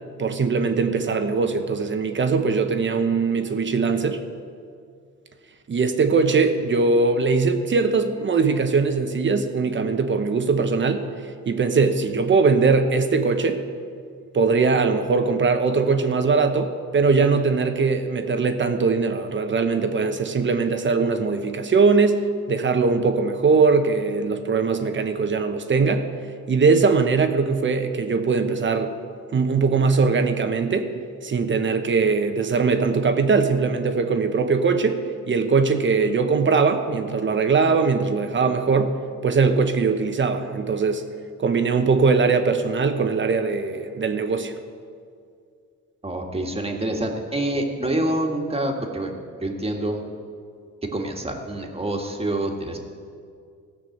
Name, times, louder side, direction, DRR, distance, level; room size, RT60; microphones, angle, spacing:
voice 1, 0.2-4.2 5.7-13.6 14.3-26.1 26.5-29.0 29.3-30.9 31.2-35.0 35.3-38.9 39.2-41.0 41.4-44.5, right 4 dB, 40° right, 7 dB, 1.0 m, -21 dB
voice 2, 46.0-49.1 49.4-50.0 50.9-52.8, right 1 dB, 20° right, 2 dB, 1.8 m, -26 dB
15.5 x 6.0 x 7.9 m, 2.2 s
cardioid pair, 90°, 30 cm